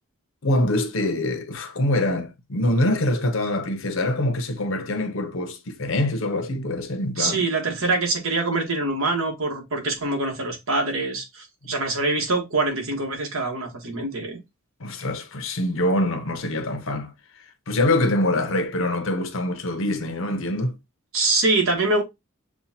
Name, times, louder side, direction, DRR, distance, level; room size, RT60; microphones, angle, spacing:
voice 1, 0.4-7.5 11.6-11.7 14.8-17.1 17.7-20.7, left 1 dB, 65° left, 0.8 m, -24 dB
voice 2, 7.2-14.4 21.1-22.0, right 2 dB, 70° right, 1.4 m, -24 dB
7.0 x 2.3 x 2.8 m
head